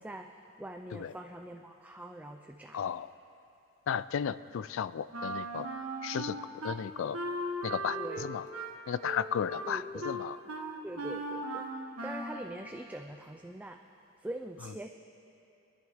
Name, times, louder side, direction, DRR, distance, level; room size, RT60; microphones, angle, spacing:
voice 1, 0.0-2.9 7.9-8.3 9.7-10.1 10.8-11.7 12.0-13.8 14.2-14.9, right 1 dB, 5° right, 4 dB, 0.4 m, -43 dB
voice 2, 2.7-3.1 3.9-5.7 6.0-6.4 6.6-7.2 7.6-8.4 8.9-10.4, left 8 dB, 65° left, 16 dB, 0.3 m, -34 dB
Wind instrument woodwind instrument, 5.1-6.8 7.1-12.5, right 1 dB, 85° right, 1.1 m, -38 dB
24.5 x 10.5 x 3.5 m, 2.9 s
head